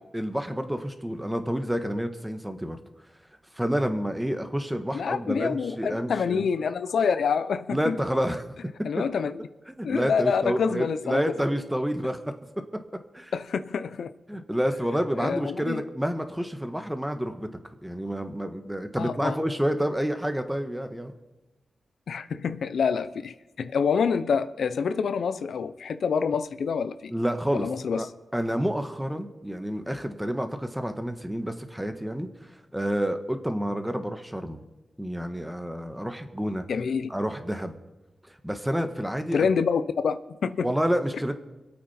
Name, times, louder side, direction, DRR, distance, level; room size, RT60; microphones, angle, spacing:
voice 1, 0.1-2.8 3.5-6.5 7.7-8.4 9.0-9.1 9.7-12.2 12.7-12.8 13.1-13.3 14.3-17.5 17.8-21.1 27.1-27.7 28.0-28.1 28.3-34.6 35.0-36.6 37.1-37.8 38.2-39.5 40.6-41.3, equal, 5° right, 1.5 m, -29 dB
voice 2, 4.9-8.0 8.8-9.4 9.8-11.2 13.3-14.1 15.2-15.8 19.0-19.4 22.1-27.1 27.5-28.1 36.7-37.1 39.3-40.7, left 6 dB, 85° left, 0.7 m, -27 dB
25.5 x 8.7 x 4.4 m
wide cardioid pair, 95°, 0 cm